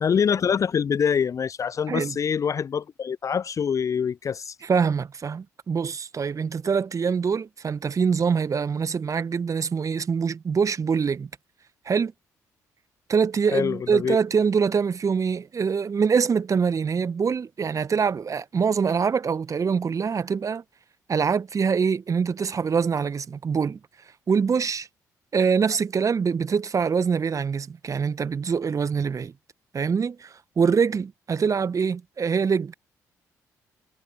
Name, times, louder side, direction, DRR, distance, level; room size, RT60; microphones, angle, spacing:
voice 1, 0.0-4.5 13.5-14.2, left 7 dB, 35° left, 0.6 m, -25 dB
voice 2, 4.6-11.3 11.9-12.1 13.1-20.6 21.1-23.8 24.3-24.9 25.3-29.3 29.7-32.7, right 6 dB, 35° right, 1.8 m, -24 dB
figure-of-eight pair, 40°, 9 cm